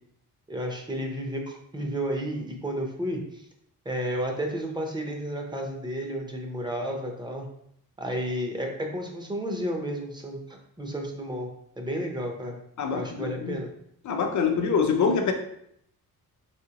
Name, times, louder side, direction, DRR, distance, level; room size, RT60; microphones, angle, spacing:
voice 1, 0.5-3.4 3.8-7.5 8.0-11.5 11.8-12.6 12.9-13.7, equal, 10° right, 1 dB, 0.6 m, -32 dB
voice 2, 12.8-13.6 14.0-15.3, left 5 dB, 50° left, 4 dB, 0.6 m, -25 dB
4.9 x 3.4 x 2.8 m, 0.72 s
wide cardioid pair, 180°, 37 cm